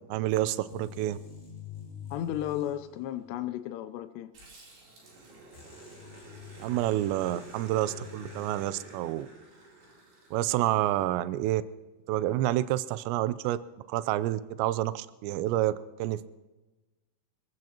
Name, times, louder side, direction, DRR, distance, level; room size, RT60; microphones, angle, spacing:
voice 1, 0.1-1.2 6.6-9.3 10.3-11.6 12.1-13.6 13.9-16.3, right 14 dB, 80° right, 14 dB, 2.6 m, -28 dB
sound 1, 0.7-3.5 5.5-9.0, left 7 dB, 20° left, 3.7 m, -48 dB
voice 2, 2.1-4.3, left 12 dB, 90° left, 8 dB, 2.4 m, -34 dB
Growling, 4.3-11.0, right 2 dB, 55° right, 5.2 m, -50 dB
25.5 x 15.5 x 2.9 m, 1.2 s
omnidirectional pair, 5.6 m